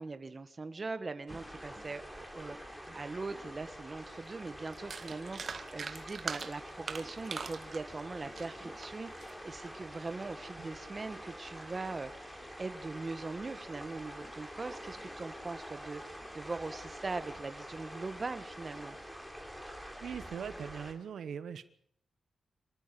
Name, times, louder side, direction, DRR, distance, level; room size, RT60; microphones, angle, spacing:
voice 1, 0.0-19.0, right 3 dB, 30° right, 11 dB, 1.5 m, -41 dB
sound 1, 1.3-20.9, equal, 5° left, 3.5 m, -46 dB
sound 2, 4.3-4.4 4.7-9.3 9.8-10.1, right 5 dB, 45° right, 1.8 m, -41 dB
voice 2, 20.0-21.6, right 7 dB, 80° right, 13 dB, 1.0 m, -41 dB
26.0 x 14.0 x 8.5 m, 0.65 s
wide cardioid pair, 145°, 0 cm